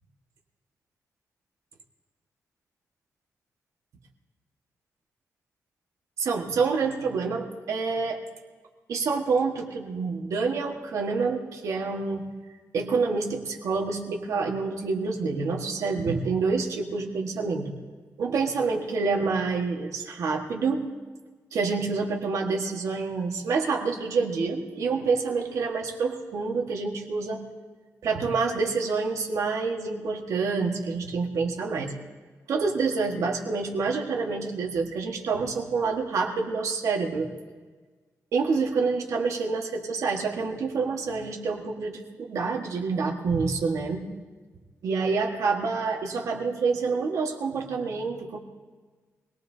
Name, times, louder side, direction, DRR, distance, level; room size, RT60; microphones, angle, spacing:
voice 1, 6.2-8.2 8.9-12.2 12.7-17.7 18.2-20.9 21.5-27.4 28.0-31.9 32.5-37.3 38.3-44.1 44.8-48.4, right 4 dB, 65° right, 1 dB, 1.7 m, -27 dB
24.0 x 18.0 x 2.8 m, 1.4 s
wide cardioid pair, 180°, 6 cm